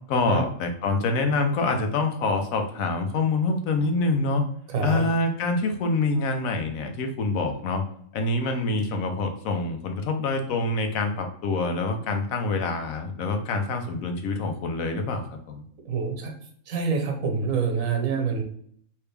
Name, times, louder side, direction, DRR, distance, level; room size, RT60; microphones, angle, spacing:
voice 1, 0.1-4.4 4.8-7.8 8.1-15.6, left 3 dB, 85° left, 5 dB, 1.1 m, -26 dB
voice 2, 15.9-16.3 16.7-18.4, right 5 dB, 75° right, 3 dB, 1.2 m, -26 dB
3.2 x 2.8 x 3.3 m, 0.62 s
omnidirectional pair, 1.4 m